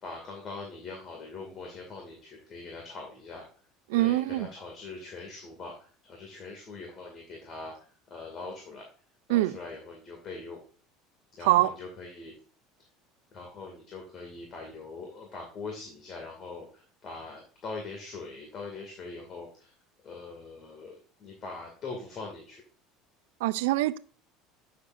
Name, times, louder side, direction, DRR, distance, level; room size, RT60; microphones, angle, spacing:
voice 1, 0.0-3.4 3.9-7.7 8.1-8.8 9.3-10.6 11.4-12.3 13.3-19.7 20.0-22.6, left 3 dB, 40° left, 2.2 m, -42 dB
voice 2, 3.9-4.5 9.3-9.6 11.4-11.7 23.4-24.0, right 16 dB, 85° right, 0.4 m, -24 dB
9.5 x 6.6 x 2.6 m
supercardioid pair, 115°, 0 cm